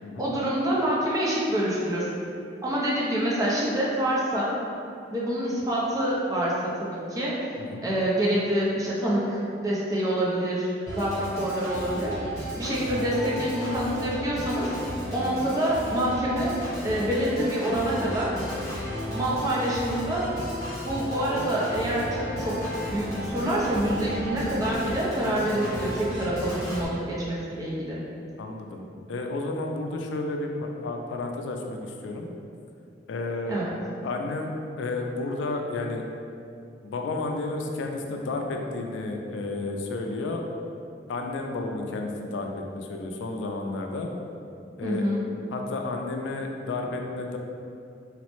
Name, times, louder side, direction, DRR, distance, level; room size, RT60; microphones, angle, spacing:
voice 1, 0.2-2.1 2.6-4.5 5.1-7.4 7.8-10.7 11.0-12.1 12.6-14.7 15.1-16.5 16.8-18.3 19.1-20.4 20.8-22.6 22.9-28.0 33.5-33.7 44.8-45.2, right 1 dB, 20° right, -6 dB, 0.5 m, -26 dB
Organ, 10.9-26.9, equal, 15° left, 0.8 m, -33 dB
voice 2, 25.5-26.1 28.4-32.3 33.1-33.6 34.0-34.5 34.8-36.0 36.8-40.4 41.1-42.5 42.7-44.1 44.8-45.0 45.5-47.4, left 2 dB, 90° left, 2 dB, 0.3 m, -32 dB
3.1 x 2.0 x 3.0 m, 2.6 s
head